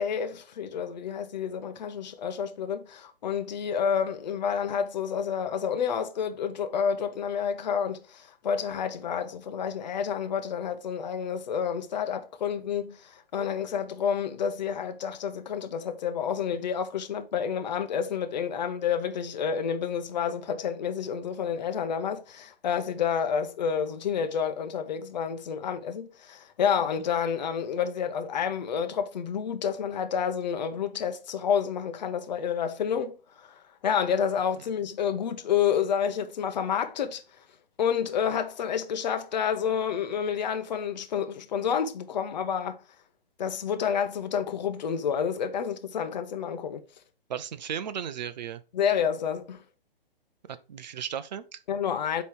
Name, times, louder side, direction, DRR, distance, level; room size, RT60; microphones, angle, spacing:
voice 1, 0.0-33.5 33.8-37.2 37.8-42.8 43.4-46.8 48.7-49.6 51.7-52.2, left 7 dB, 45° left, 0.8 m, -29 dB
voice 2, 47.3-48.6 50.5-51.6, right 8 dB, 50° right, 0.6 m, -35 dB
8.2 x 3.1 x 4.8 m
figure-of-eight pair, 125°, 29 cm